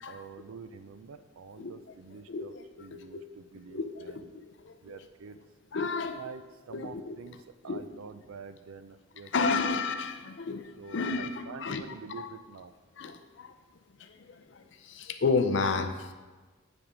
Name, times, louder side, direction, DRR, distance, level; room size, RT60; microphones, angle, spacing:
voice 1, 0.1-4.3 4.8-5.4 6.2-7.4 7.6-9.8 10.7-12.7, right 5 dB, 85° right, 11 dB, 0.4 m, -47 dB
voice 2, 2.3-3.2 3.7-5.0 5.7-6.2 6.7-7.2 7.6-7.9 9.3-11.8 12.2-12.3 13.0-13.5 14.0-16.1, left 4 dB, 60° left, 8 dB, 0.5 m, -32 dB
9.6 x 3.5 x 5.1 m, 1.3 s
head